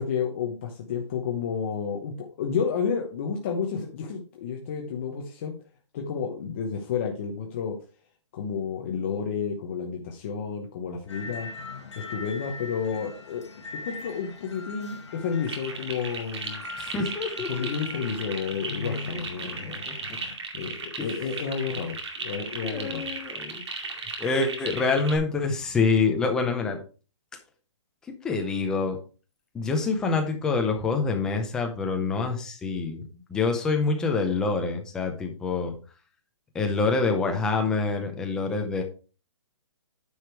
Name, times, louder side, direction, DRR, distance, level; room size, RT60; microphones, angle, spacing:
voice 1, 0.0-5.5 5.9-7.8 8.3-11.5 12.0-13.5 13.8-16.6 17.5-23.1, left 6 dB, 25° left, 0 dB, 0.9 m, -31 dB
sound 1, 11.1-20.4, left 4 dB, 70° left, 1.8 m, -41 dB
sound 2, 15.4-25.2, right 4 dB, 65° right, 2.3 m, -36 dB
voice 2, 16.8-17.5 18.9-20.2 21.0-21.1 22.6-26.8 28.2-29.0 29.5-33.0 33.3-35.7 36.5-38.8, left 4 dB, 5° left, 4 dB, 0.6 m, -26 dB
9.5 x 5.1 x 4.5 m, 0.35 s
hypercardioid pair, 175°, 15 cm